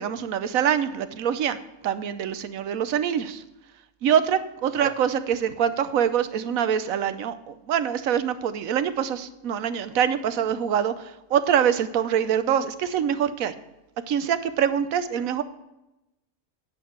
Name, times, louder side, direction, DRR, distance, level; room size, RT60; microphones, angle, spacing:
voice 1, 0.0-1.6 1.8-3.4 4.0-13.5 14.1-15.4, right 9 dB, 75° right, 12 dB, 1.1 m, -24 dB
10.0 x 7.9 x 4.5 m, 0.92 s
omnidirectional pair, 1.5 m